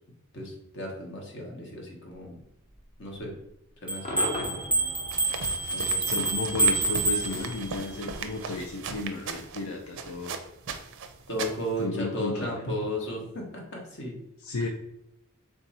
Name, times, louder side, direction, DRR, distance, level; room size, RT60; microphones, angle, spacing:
voice 1, 0.3-2.4 3.0-3.3 3.8-4.6 5.7-6.2 11.3-14.2, equal, 55° left, 0 dB, 1.2 m, -35 dB
sound 1, 3.9-7.9, right 3 dB, 5° right, 0.5 m, -27 dB
Cheering / Crowd / Fireworks, 4.0-9.3, left 1 dB, 30° left, 0.9 m, -40 dB
sound 2, 5.1-11.8, right 5 dB, 55° right, 0.4 m, -38 dB
voice 2, 6.1-10.4 11.8-12.6 14.4-14.7, left 3 dB, 85° left, 1 dB, 0.5 m, -33 dB
3.6 x 2.7 x 4.1 m, 0.80 s
head